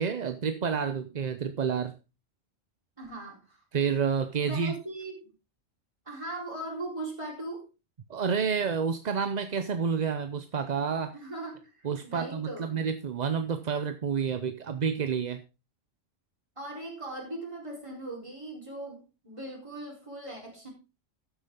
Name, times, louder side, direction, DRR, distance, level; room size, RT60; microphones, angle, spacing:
voice 1, 0.0-1.9 3.7-4.7 8.1-11.1 11.8-15.4, right 6 dB, 45° right, 0.7 m, -29 dB
voice 2, 3.0-3.6 4.4-5.3 6.1-7.7 11.1-12.7 16.6-20.7, right 2 dB, 25° right, 4.4 m, -39 dB
13.0 x 8.1 x 3.7 m
omnidirectional pair, 1.3 m